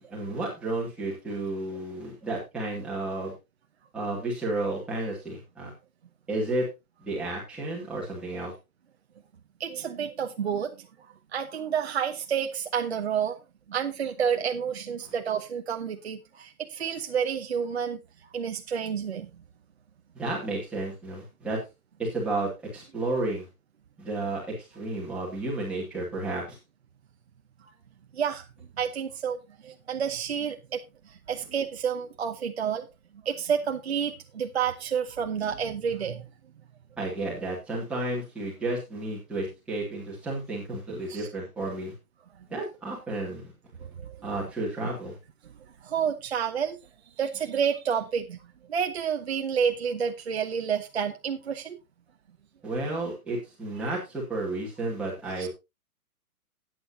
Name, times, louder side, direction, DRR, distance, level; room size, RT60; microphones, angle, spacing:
voice 1, 0.1-3.3 3.9-5.7 6.3-6.7 7.0-8.5 20.1-21.6 22.0-23.5 24.0-26.6 37.0-41.9 42.5-43.5 44.2-45.2 52.6-55.5, right 2 dB, 5° right, 2.3 m, -32 dB
voice 2, 9.6-10.9 11.3-13.4 13.7-18.0 18.3-19.3 28.1-28.5 28.8-29.4 29.6-30.8 31.3-32.9 33.2-36.3 41.1-41.3 43.8-44.2 45.8-46.8 47.2-48.4 48.7-51.8 55.4-55.5, right 7 dB, 45° right, 1.0 m, -29 dB
14.0 x 9.3 x 2.8 m
hypercardioid pair, 180°, 44 cm